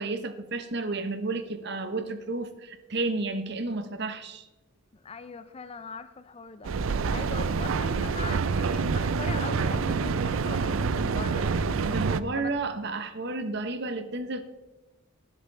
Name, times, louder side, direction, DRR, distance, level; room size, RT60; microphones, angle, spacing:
voice 1, 0.0-4.4 11.9-14.4, right 3 dB, 55° right, 9 dB, 1.0 m, -32 dB
voice 2, 5.0-12.1 12.4-12.5, left 4 dB, 30° left, 12 dB, 0.5 m, -41 dB
Mechanical fan, 6.6-12.2, right 5 dB, 80° right, 0.5 m, -27 dB
18.5 x 10.5 x 3.4 m, 1.1 s
head